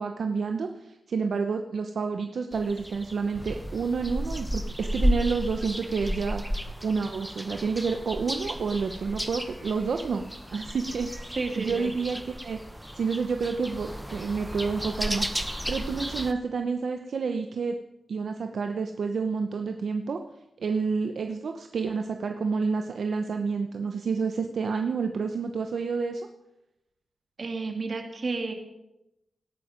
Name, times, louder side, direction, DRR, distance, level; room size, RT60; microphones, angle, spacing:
voice 1, 0.0-6.4 6.8-10.2 10.5-12.6 12.9-17.8 18.1-20.2 20.6-26.3, right 5 dB, 75° right, 5 dB, 0.9 m, -29 dB
sound 1, 2.5-16.3, equal, ahead, 1.1 m, -33 dB
voice 2, 11.4-11.9 27.4-28.5, right 3 dB, 50° right, 4 dB, 2.7 m, -31 dB
18.0 x 12.0 x 5.2 m, 0.90 s
wide cardioid pair, 100°, 0 cm